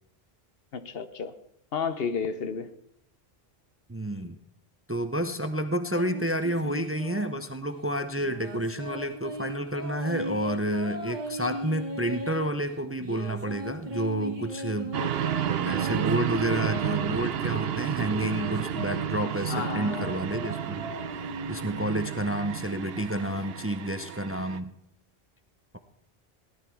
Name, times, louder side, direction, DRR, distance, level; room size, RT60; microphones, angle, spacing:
voice 1, 0.7-1.3 1.7-2.7 19.5-20.1, left 6 dB, 70° left, 1.1 m, -32 dB
voice 2, 3.9-4.4 4.9-15.2 15.6-20.9 21.5-24.7, right 1 dB, 15° right, 0.6 m, -30 dB
sound 1, 5.9-7.5 8.2-12.5 13.0-17.2 17.8-22.0, right 1 dB, 45° right, 1.8 m, -37 dB
sound 2, 14.9-24.6, right 10 dB, 70° right, 0.9 m, -31 dB
17.0 x 11.5 x 4.5 m
omnidirectional pair, 1.0 m